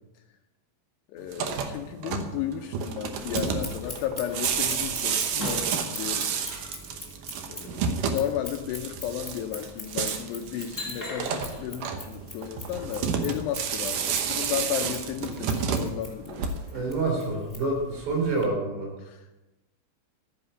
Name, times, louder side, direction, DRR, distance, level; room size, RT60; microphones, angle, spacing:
voice 1, 1.1-6.3 7.5-16.5 19.0-19.4, left 10 dB, 80° left, 5 dB, 2.6 m, -34 dB
sound 1, 1.2-16.9, right 6 dB, 85° right, 1.8 m, -31 dB
Scissors, 3.2-18.4, left 1 dB, 15° left, 0.7 m, -41 dB
voice 2, 16.7-18.9, right 3 dB, 65° right, 0 dB, 5.5 m, -27 dB
13.0 x 9.6 x 5.5 m, 1.0 s
omnidirectional pair, 5.4 m